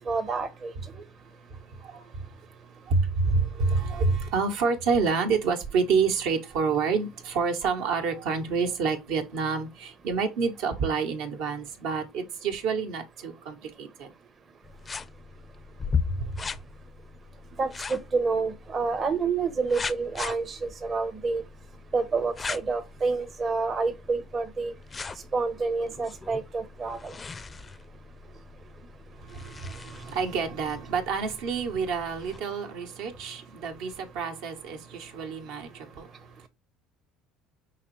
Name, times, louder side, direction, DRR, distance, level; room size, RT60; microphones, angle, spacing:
voice 1, 0.1-0.7 17.6-21.4 21.9-24.7 25.3-27.1, right 4 dB, 35° right, 0.7 m, -28 dB
voice 2, 1.2-14.1 16.1-16.4 29.2-36.5, right 5 dB, 75° right, 1.1 m, -28 dB
sound 1, 14.6-32.4, left 5 dB, 25° left, 0.4 m, -39 dB
5.7 x 3.0 x 3.1 m
supercardioid pair, 105°, 0 cm